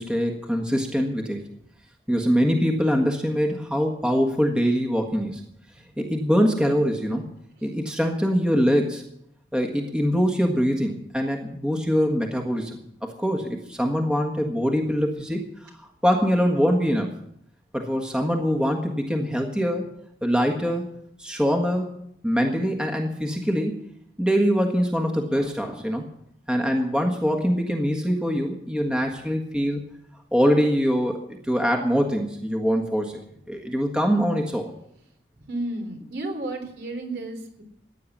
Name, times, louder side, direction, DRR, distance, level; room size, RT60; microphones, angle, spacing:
voice 1, 0.0-1.5 2.1-5.4 6.0-7.3 7.6-9.0 9.5-15.7 16.0-17.1 17.7-19.9 20.2-20.9 21.2-23.9 24.2-26.0 26.5-29.8 30.3-33.2 33.5-34.7, equal, 5° right, 2 dB, 1.6 m, -23 dB
voice 2, 35.5-37.6, right 2 dB, 65° right, 3 dB, 3.6 m, -32 dB
15.5 x 9.9 x 7.3 m, 0.72 s
head